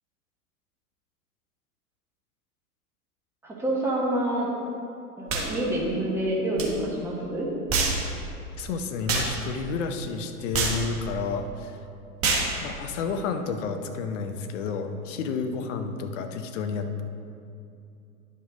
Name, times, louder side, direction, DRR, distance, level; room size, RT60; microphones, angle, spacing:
voice 1, 3.4-4.5 5.2-7.5, right 1 dB, 5° right, -5 dB, 1.3 m, -27 dB
sound 1, 5.3-5.5 6.6-6.7 7.7-8.0 9.1-9.3 10.5-10.8 12.2-12.5, right 4 dB, 30° right, 1.4 m, -25 dB
voice 2, 8.5-11.8 12.6-17.0, left 5 dB, 50° left, 7 dB, 0.8 m, -31 dB
10.5 x 5.5 x 3.8 m, 2.6 s
figure-of-eight pair, 100°, 46 cm